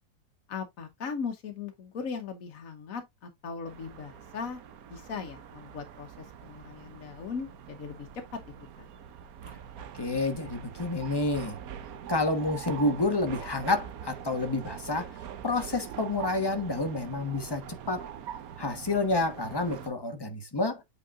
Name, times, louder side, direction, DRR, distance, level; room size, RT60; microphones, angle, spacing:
voice 1, 0.5-4.6 4.9-8.2 8.8-8.9, left 5 dB, 60° left, 1.4 m, -38 dB
sound 1, 3.6-19.9, right 9 dB, 65° right, 1.1 m, -43 dB
voice 2, 10.0-11.6 12.1-15.1 15.4-18.0 18.6-20.8, left 2 dB, 20° left, 0.9 m, -29 dB
8.2 x 4.7 x 2.4 m
omnidirectional pair, 1.8 m